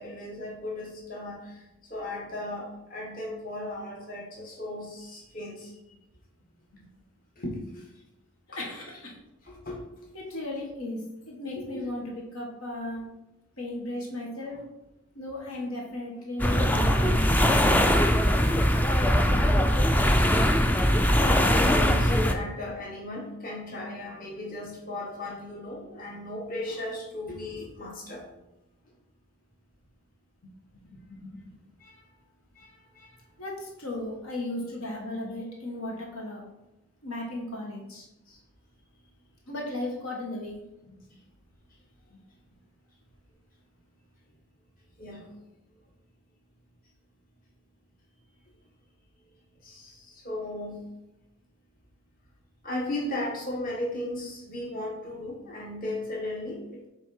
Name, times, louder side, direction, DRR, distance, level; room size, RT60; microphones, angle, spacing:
voice 1, 0.0-1.6 1.9-5.7 7.4-7.9 9.4-10.1 11.6-11.8 17.7-17.9 21.1-28.3 31.8-32.0 32.5-33.2 38.3-38.4 45.0-45.3 49.6-50.8 52.6-56.9, left 1 dB, 40° left, -3 dB, 1.7 m, -36 dB
voice 2, 8.5-9.1 10.1-13.1 13.6-14.6 15.1-18.0 30.9-31.4 33.4-36.4 37.0-38.0 39.5-41.0 42.1-42.2, left 1 dB, 75° left, -1 dB, 1.5 m, -36 dB
sound 1, 16.4-22.3, equal, 10° left, 0.4 m, -21 dB
7.7 x 3.6 x 4.8 m, 0.92 s
head